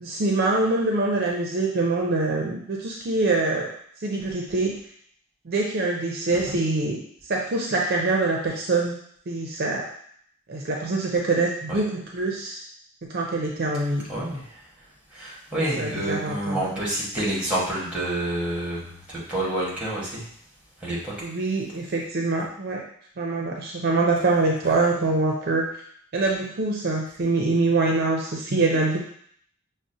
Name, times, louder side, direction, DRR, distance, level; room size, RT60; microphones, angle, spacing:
voice 1, 0.0-3.7 4.0-4.7 5.5-7.0 7.3-8.9 9.3-9.8 10.5-12.6 13.1-14.0 15.8-16.6 21.2-22.8 23.2-25.6 26.1-29.0, right 3 dB, 50° right, -1 dB, 0.5 m, -24 dB
voice 2, 14.1-14.6 15.1-20.2 20.8-21.1 24.6-24.7, right 1 dB, 5° right, -6 dB, 1.2 m, -28 dB
6.0 x 2.1 x 2.6 m, 0.64 s
head